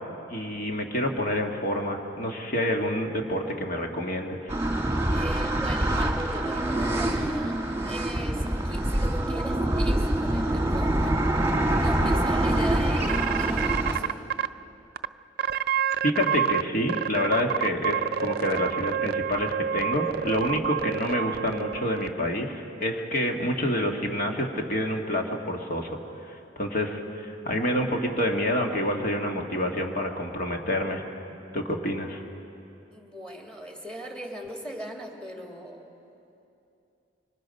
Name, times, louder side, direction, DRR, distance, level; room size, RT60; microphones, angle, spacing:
voice 1, 0.3-4.5 16.0-25.9 26.3-31.0 31.5-32.2, left 1 dB, 50° left, 2 dB, 1.8 m, -28 dB
sound 1, 4.5-14.0, right 1 dB, 15° right, 1.7 m, -25 dB
voice 2, 5.1-7.6 7.9-11.2 11.7-14.2 32.9-35.9, right 1 dB, 5° left, 0 dB, 2.4 m, -39 dB
sound 2, 13.1-14.5 15.0-15.1 15.4-16.6 16.9-22.1, right 9 dB, 55° right, 0.4 m, -28 dB
25.0 x 24.5 x 5.3 m, 2.7 s
head